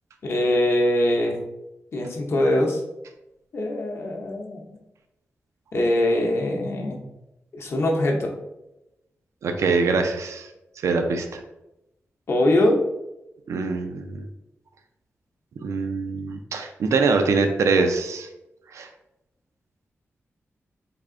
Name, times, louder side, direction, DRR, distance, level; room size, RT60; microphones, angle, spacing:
voice 1, 0.2-1.4 1.9-2.8 3.5-4.7 5.7-7.0 7.5-8.3 12.3-12.8, left 1 dB, 60° left, 1 dB, 0.6 m, -22 dB
voice 2, 9.4-10.5 10.8-11.4 13.5-14.3 15.6-18.3 18.7-18.9, right 4 dB, 85° right, 5 dB, 0.4 m, -23 dB
3.4 x 2.4 x 3.6 m, 0.91 s
wide cardioid pair, 110°, 5 cm